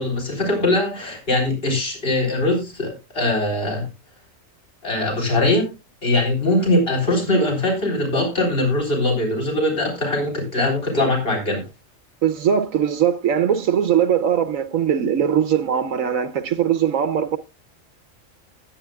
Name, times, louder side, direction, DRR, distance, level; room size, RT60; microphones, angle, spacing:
voice 1, 0.0-3.9 4.8-5.7 6.0-11.6, left 1 dB, 45° left, 4.1 m, -21 dB
voice 2, 12.2-17.4, right 8 dB, 80° right, 1.2 m, -20 dB
20.0 x 8.9 x 2.3 m
omnidirectional pair, 1.4 m